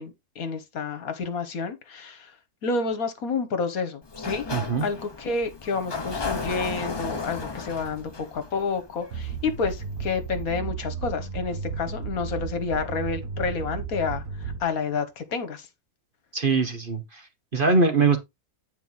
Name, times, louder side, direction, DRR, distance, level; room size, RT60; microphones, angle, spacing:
voice 1, 0.0-2.3 2.6-4.4 4.8-15.7, left 4 dB, 65° left, 1.6 m, -29 dB
Sliding door, 4.0-9.7, left 4 dB, 25° left, 0.6 m, -34 dB
voice 2, 4.5-4.9 16.3-18.2, right 4 dB, 35° right, 1.2 m, -22 dB
sound 1, 9.1-14.9, right 5 dB, 60° right, 1.7 m, -34 dB
9.1 x 4.7 x 3.9 m
omnidirectional pair, 1.6 m